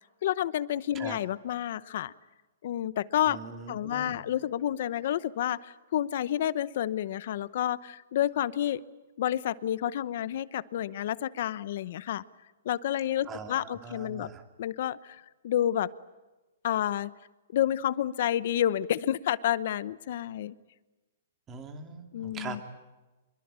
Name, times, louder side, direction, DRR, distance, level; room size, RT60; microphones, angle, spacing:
voice 1, 0.2-2.1 2.6-3.4 3.7-8.8 9.2-12.2 12.6-14.3 14.6-15.9 16.6-17.1 17.5-20.5 22.1-22.6, left 11 dB, 50° left, 17 dB, 0.9 m, -29 dB
voice 2, 3.3-4.2 13.3-14.4 21.5-22.6, right 4 dB, 15° right, 6 dB, 2.5 m, -42 dB
26.5 x 22.5 x 8.9 m, 1.1 s
hypercardioid pair, 170°, 0 cm